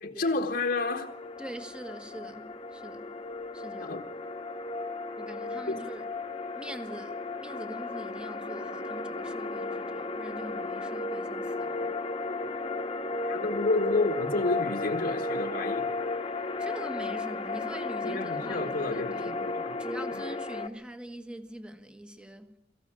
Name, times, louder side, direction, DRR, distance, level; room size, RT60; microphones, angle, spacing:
voice 1, 0.0-1.1 3.8-4.0 5.7-5.8 13.2-15.9 18.0-19.8 20.1-20.2, left 3 dB, 55° left, 1.4 m, -30 dB
sound 1, 0.7-20.7, left 3 dB, 30° left, 1.3 m, -34 dB
voice 2, 1.4-3.2 3.5-4.0 5.2-6.1 6.5-12.0 16.6-19.4 19.8-22.6, right 1 dB, 5° right, 1.3 m, -43 dB
23.5 x 15.0 x 8.7 m
head